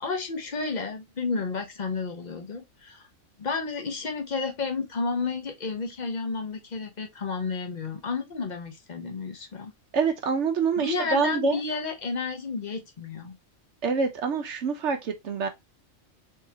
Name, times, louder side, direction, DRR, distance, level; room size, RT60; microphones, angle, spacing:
voice 1, 0.0-3.0 3.4-9.7 10.8-13.4, left 4 dB, 40° left, 0.7 m, -31 dB
voice 2, 9.9-11.6 13.8-15.5, right 5 dB, 60° right, 1.0 m, -26 dB
4.4 x 2.8 x 2.7 m
omnidirectional pair, 1.4 m